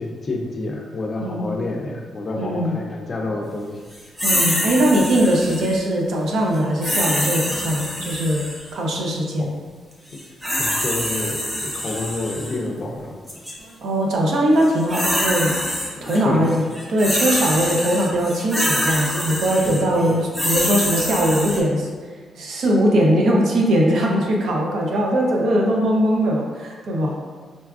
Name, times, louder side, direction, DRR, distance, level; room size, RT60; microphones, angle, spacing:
voice 1, 0.0-3.8 9.4-9.5 10.6-11.4 11.7-13.1 16.0-16.4 17.7-17.9 19.6-20.2, left 2 dB, 35° left, 1 dB, 0.4 m, -28 dB
voice 2, 2.3-2.7 4.2-8.4 8.7-9.5 13.8-15.5 16.0-16.6 16.9-21.9 22.4-27.2, equal, 70° right, -1 dB, 0.6 m, -20 dB
sound 1, 4.2-5.8 6.8-8.7 10.1-12.6 13.3-13.5 14.6-16.2 16.5-21.6, equal, 5° right, 0.6 m, -25 dB
3.9 x 2.3 x 2.3 m, 1.5 s
cardioid pair, 105°, 0 cm